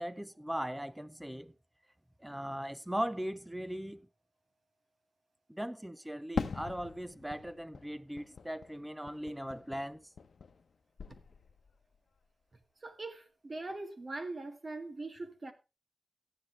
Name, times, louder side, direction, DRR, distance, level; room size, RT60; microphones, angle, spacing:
voice 1, 0.0-1.5 2.2-4.0 5.5-10.1, equal, 5° right, 0.6 m, -39 dB
Fireworks, 6.4-10.7 11.0-11.8, left 5 dB, 65° left, 1.0 m, -42 dB
voice 2, 12.8-15.5, right 2 dB, 35° right, 1.9 m, -41 dB
14.5 x 10.0 x 3.4 m
wide cardioid pair, 165°, 0 cm